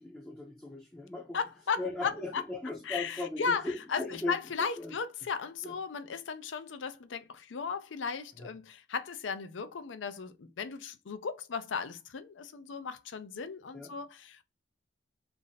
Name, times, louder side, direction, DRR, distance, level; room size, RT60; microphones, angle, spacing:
voice 1, 0.0-1.4 1.8-4.4 4.8-4.9 5.6-5.8 8.4-8.5 13.7-13.9, left 2 dB, 10° left, 0.5 m, -38 dB
voice 2, 1.3-2.4 2.9-14.4, left 5 dB, 90° left, 0.5 m, -36 dB
3.2 x 2.6 x 3.9 m
head